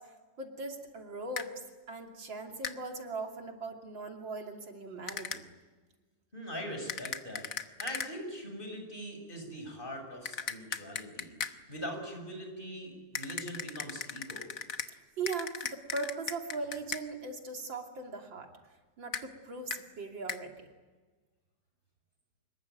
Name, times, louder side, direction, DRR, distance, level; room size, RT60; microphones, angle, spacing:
voice 1, 0.0-1.6 1.9-5.5 14.9-18.5 19.0-20.7, right 3 dB, 80° right, 3 dB, 3.6 m, -40 dB
sound 1, 1.4-1.5 2.6-2.8 5.1-5.4 6.9-8.1 10.3-11.6 13.1-14.9 15.3-17.0 19.1-19.3 19.7-19.8 20.3-20.4, left 7 dB, 50° left, 1.4 m, -38 dB
voice 2, 6.3-14.5, equal, 25° left, 3 dB, 6.7 m, -42 dB
26.0 x 22.0 x 9.3 m, 1.3 s
omnidirectional pair, 2.0 m